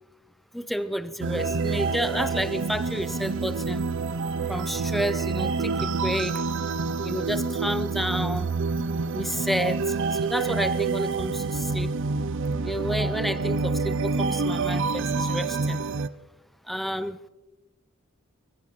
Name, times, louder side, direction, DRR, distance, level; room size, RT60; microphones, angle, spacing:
voice 1, 0.5-3.8 4.5-6.4 7.0-8.5 9.1-11.9 12.6-15.8 16.7-17.2, equal, ahead, 0.5 m, -30 dB
sound 1, 1.2-16.1, right 4 dB, 60° right, 0.5 m, -27 dB
25.0 x 14.5 x 3.1 m
head